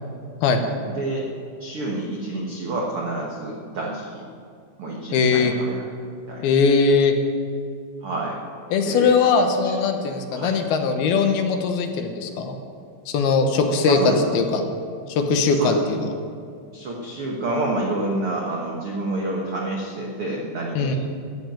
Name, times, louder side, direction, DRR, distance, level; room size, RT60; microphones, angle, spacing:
voice 1, 0.9-1.3 1.6-4.2 4.8-5.8 6.3-6.4 8.0-8.4 8.8-9.1 10.3-10.6 13.9-14.3 15.5-15.8 16.7-20.9, right 2 dB, 75° right, -2 dB, 1.2 m, -28 dB
voice 2, 5.1-5.5 6.4-7.1 8.7-12.6 13.1-14.0 14.3-14.6 15.1-16.0 20.8-21.0, left 5 dB, 75° left, 5 dB, 2.9 m, -20 dB
13.0 x 7.8 x 9.0 m, 2.3 s
omnidirectional pair, 4.6 m